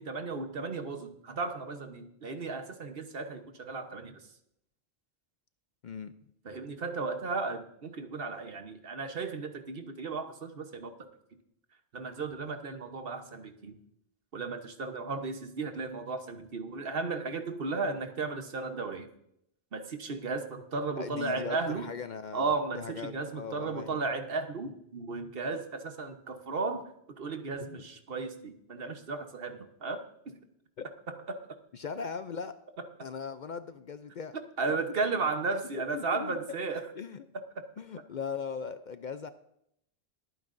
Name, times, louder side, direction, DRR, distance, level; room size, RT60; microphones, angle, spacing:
voice 1, 0.0-4.3 6.4-10.9 11.9-13.8 14.3-19.1 19.7-21.9 22.3-30.3 31.1-31.6 32.8-32.9 34.3-36.9, right 4 dB, 60° right, 7 dB, 1.2 m, -35 dB
voice 2, 21.0-24.0 27.6-27.8 30.8-30.9 31.7-32.5 33.0-34.4 35.9-36.4 36.9-37.2 37.8-39.3, left 6 dB, 55° left, 11 dB, 0.6 m, -39 dB
22.0 x 9.3 x 2.6 m, 0.75 s
omnidirectional pair, 1.1 m